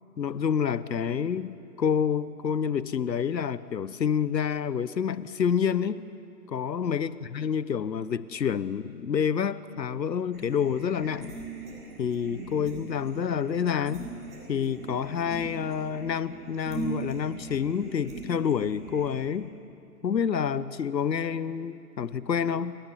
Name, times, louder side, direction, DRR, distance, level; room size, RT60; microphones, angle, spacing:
voice 1, 0.2-6.0 6.5-11.3 12.0-14.1 14.5-19.5 20.0-22.8, left 7 dB, 85° left, 16 dB, 1.0 m, -28 dB
sound 1, 10.3-19.2, right 3 dB, 65° right, 7.0 m, -40 dB
29.5 x 12.0 x 9.9 m, 2.8 s
hypercardioid pair, 140°, 49 cm